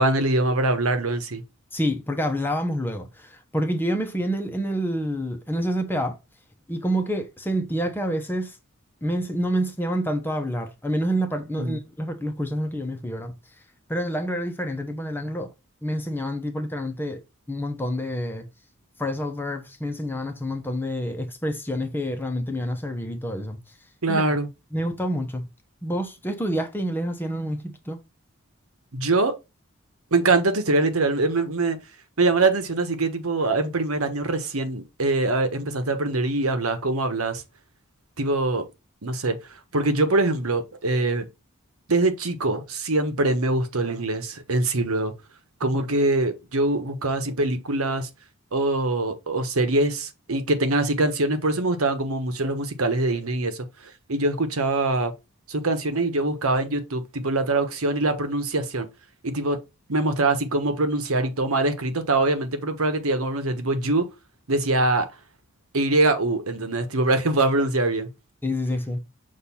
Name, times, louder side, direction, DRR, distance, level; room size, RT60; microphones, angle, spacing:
voice 1, 0.0-1.4 11.6-11.8 24.0-24.5 28.9-29.4 30.1-31.8 32.2-37.4 38.2-38.6 39.0-39.4 39.7-41.3 41.9-45.1 45.6-48.1 48.5-55.1 55.5-58.9 59.2-59.6 59.9-64.1 64.5-65.1 65.7-68.1, right 2 dB, 75° right, 1.2 m, -23 dB
voice 2, 1.7-6.2 6.7-8.6 9.0-13.3 13.9-15.5 15.8-17.2 17.5-18.5 19.0-23.6 24.1-24.4 24.7-25.5 25.8-28.0 45.6-45.8 68.4-69.0, equal, 10° left, 0.9 m, -28 dB
6.6 x 2.6 x 5.5 m
head